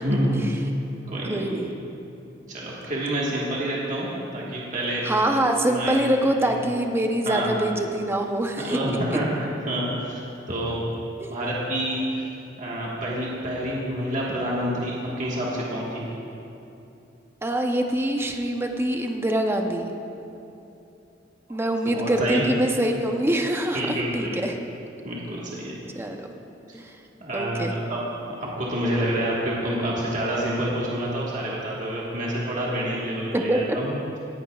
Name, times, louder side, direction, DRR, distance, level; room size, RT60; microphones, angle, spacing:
voice 1, 0.0-0.6 1.1-1.5 2.5-5.0 5.6-6.0 6.4-6.5 7.2-7.5 8.6-10.2 10.5-10.8 11.3-12.2 12.6-16.0 21.5-21.6 21.9-22.5 23.7-24.5 25.0-25.7 26.7-26.8 27.2-28.0 28.4-33.9, right 1 dB, 45° right, -5 dB, 1.5 m, -28 dB
voice 2, 1.3-1.7 5.0-8.8 9.1-9.2 11.2-11.3 17.4-19.9 21.5-24.5 25.9-26.3 26.7-26.9 27.3-27.7 33.3-33.8, right 1 dB, 15° right, 3 dB, 0.7 m, -24 dB
17.5 x 10.5 x 2.4 m, 2.8 s
head